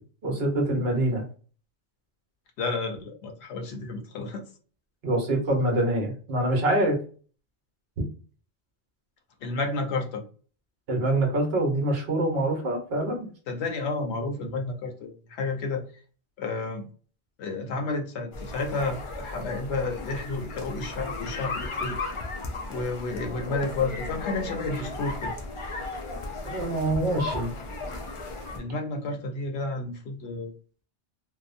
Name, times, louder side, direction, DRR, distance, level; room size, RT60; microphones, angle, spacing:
voice 1, 0.2-1.2 5.0-7.0 10.9-13.3 26.4-27.5, right 1 dB, 60° right, 2 dB, 1.1 m, -25 dB
voice 2, 2.6-4.4 9.4-10.2 13.5-15.8 16.4-16.9 17.4-22.0 22.7-25.3 28.5-30.5, left 3 dB, 70° left, 3 dB, 0.9 m, -31 dB
sound 1, 18.3-28.6, left 3 dB, 55° left, 0.3 m, -35 dB
2.8 x 2.1 x 2.5 m, 0.40 s
omnidirectional pair, 1.2 m